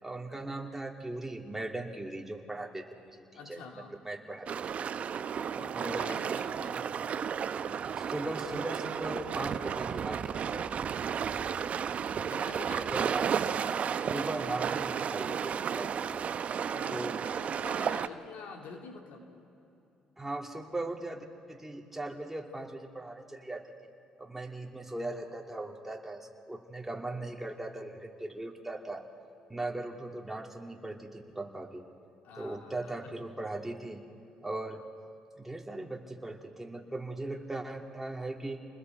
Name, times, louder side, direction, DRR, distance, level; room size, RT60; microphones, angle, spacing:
voice 1, 0.0-4.5 5.7-6.2 6.7-7.0 7.8-10.7 12.9-13.3 14.1-16.3 16.9-17.2 20.2-23.7 24.2-29.1 29.5-31.8 32.4-34.0 34.4-34.8 35.4-38.6, right 2 dB, 10° right, 1 dB, 2.6 m, -39 dB
voice 2, 3.3-4.0 5.5-6.8 12.1-12.9 16.6-19.3 32.2-33.1, left 4 dB, 75° left, 2 dB, 2.4 m, -47 dB
sound 1, 4.5-18.1, right 7 dB, 50° right, 0.7 m, -33 dB
28.5 x 21.0 x 4.6 m, 2.8 s
supercardioid pair, 70°, 3 cm